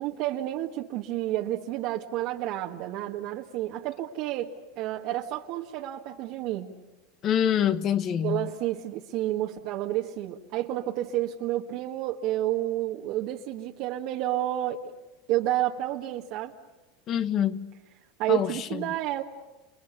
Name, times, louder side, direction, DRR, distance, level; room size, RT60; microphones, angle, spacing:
voice 1, 0.0-6.7 8.2-14.9 15.3-16.5 18.2-19.2, right 14 dB, 55° right, 1.8 m, -30 dB
voice 2, 7.2-8.5 17.1-17.6 18.3-18.9, left 9 dB, 40° left, 1.6 m, -26 dB
29.5 x 29.0 x 6.9 m
supercardioid pair, 125°, 0 cm